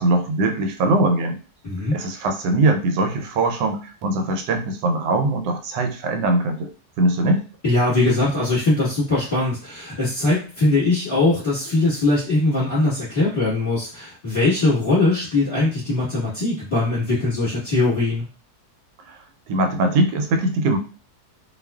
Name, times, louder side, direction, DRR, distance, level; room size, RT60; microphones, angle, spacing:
voice 1, 0.0-1.4 1.9-6.7 7.0-7.4 19.5-20.8, right 2 dB, 90° right, 5 dB, 1.2 m, -21 dB
voice 2, 1.6-2.0 7.6-18.2, left 2 dB, 20° left, -12 dB, 1.1 m, -21 dB
2.6 x 2.4 x 2.2 m, 0.36 s
omnidirectional pair, 1.8 m